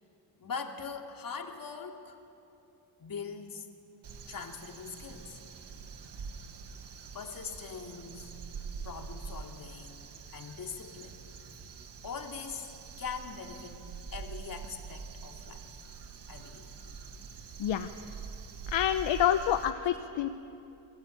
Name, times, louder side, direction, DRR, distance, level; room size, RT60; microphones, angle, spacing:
voice 1, 0.4-2.2 3.0-3.7 4.3-5.4 7.1-8.3 8.8-11.2 12.0-12.7 13.0-13.8 14.1-15.7 16.3-17.0, left 5 dB, 45° left, 3 dB, 2.8 m, -42 dB
Crow, 4.0-19.7, right 5 dB, 60° right, 2.1 m, -45 dB
voice 2, 18.7-20.3, left 10 dB, 70° left, 8 dB, 1.0 m, -27 dB
29.0 x 21.5 x 9.3 m, 2.8 s
cardioid pair, 105°, 46 cm